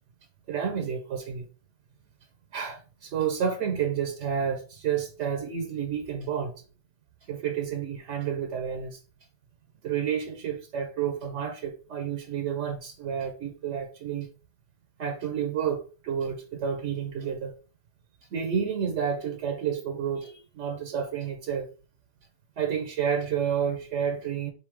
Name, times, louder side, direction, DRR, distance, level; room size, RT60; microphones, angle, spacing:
voice 1, 0.5-1.5 2.5-6.5 7.3-9.0 9.8-14.3 15.0-17.5 18.3-21.7 22.6-24.5, right 7 dB, 75° right, 1.0 m, -30 dB
3.5 x 2.6 x 4.5 m
omnidirectional pair, 1.3 m